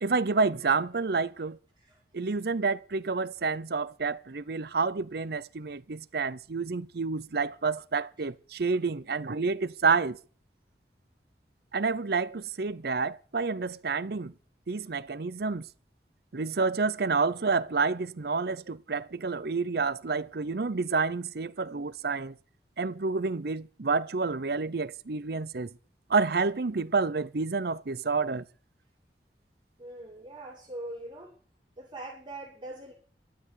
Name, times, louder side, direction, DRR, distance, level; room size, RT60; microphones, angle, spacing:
voice 1, 0.0-1.6 2.1-10.2 11.7-14.3 14.7-15.7 16.3-22.3 22.8-25.7 26.1-28.4, right 4 dB, 60° right, 0.7 m, -29 dB
voice 2, 29.8-31.3 31.8-32.9, right 1 dB, 25° right, 6.3 m, -42 dB
12.5 x 8.9 x 9.4 m
head